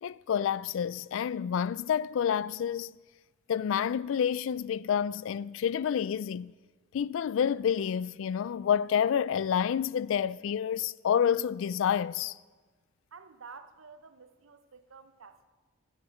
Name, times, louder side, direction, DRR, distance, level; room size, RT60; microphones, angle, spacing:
voice 1, 0.0-2.9 3.5-6.5 6.9-12.4, left 8 dB, 70° left, 0.3 m, -29 dB
voice 2, 13.1-15.5, right 5 dB, 80° right, 0.8 m, -50 dB
12.5 x 10.5 x 6.4 m
head